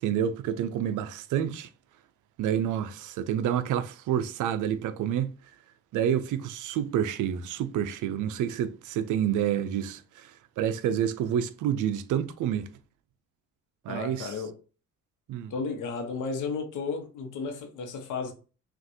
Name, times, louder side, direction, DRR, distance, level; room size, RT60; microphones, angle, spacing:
voice 1, 0.0-1.7 2.4-5.3 5.9-12.7 13.8-14.3 15.3-15.5, right 9 dB, 80° right, 0.6 m, -28 dB
voice 2, 13.9-14.6 15.5-18.3, left 4 dB, 80° left, 1.2 m, -33 dB
6.0 x 2.5 x 2.7 m
cardioid pair, 90°, 30 cm